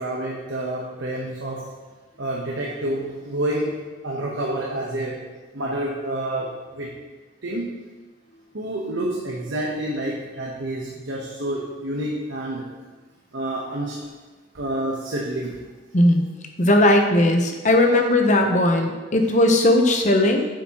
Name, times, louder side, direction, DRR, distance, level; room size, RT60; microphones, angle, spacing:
voice 1, 0.0-1.7 2.2-6.9 7.4-7.8 8.5-12.7 13.3-14.0 14.5-15.6 18.4-18.5, right 1 dB, 80° right, -3 dB, 1.1 m, -28 dB
voice 2, 16.6-20.4, left 1 dB, 40° left, 3 dB, 0.9 m, -18 dB
8.8 x 7.6 x 3.0 m, 1.3 s
head